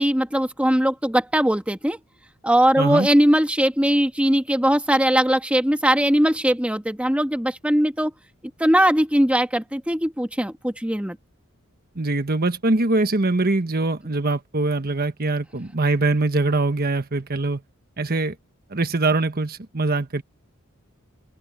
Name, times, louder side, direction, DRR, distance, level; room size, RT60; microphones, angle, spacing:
voice 1, 0.0-2.0 2.4-8.1 8.6-11.2, equal, 5° right, 1.3 m, -20 dB
voice 2, 2.8-3.1 12.0-17.6 18.0-18.3 18.7-20.2, right 2 dB, 45° right, 1.3 m, -22 dB
open air
head